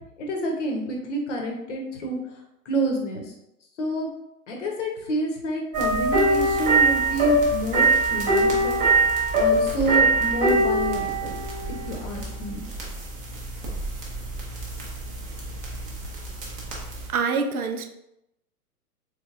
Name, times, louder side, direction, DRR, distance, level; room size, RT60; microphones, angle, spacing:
voice 1, 0.2-2.2 2.6-3.3 3.8-4.1 4.5-8.8 9.3-11.3 11.7-12.6, right 1 dB, 50° left, 1 dB, 1.0 m, -28 dB
sound 1, 5.7-17.1, right 2 dB, 15° right, 0.6 m, -23 dB
voice 2, 17.1-17.9, right 5 dB, 65° right, 7 dB, 0.5 m, -25 dB
3.5 x 3.3 x 2.5 m, 0.84 s
figure-of-eight pair, 110°, 46 cm